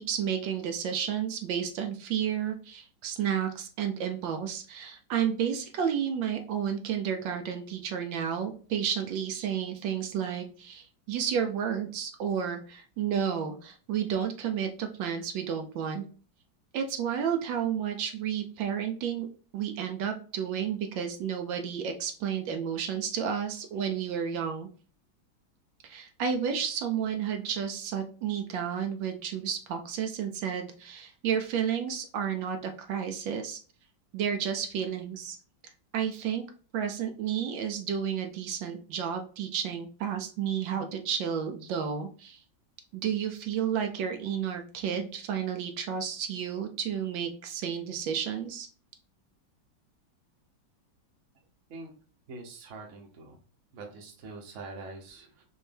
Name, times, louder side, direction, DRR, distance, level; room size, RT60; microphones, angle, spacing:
voice 1, 0.0-16.0 16.7-19.3 19.5-24.7 25.8-33.6 34.1-35.4 35.9-36.4 36.7-42.4 42.9-48.7, right 8 dB, 75° right, 5 dB, 1.3 m, -31 dB
voice 2, 52.3-53.4 53.7-55.4, right 3 dB, 50° right, 2 dB, 1.0 m, -44 dB
4.4 x 3.1 x 3.3 m, 0.40 s
omnidirectional pair, 2.1 m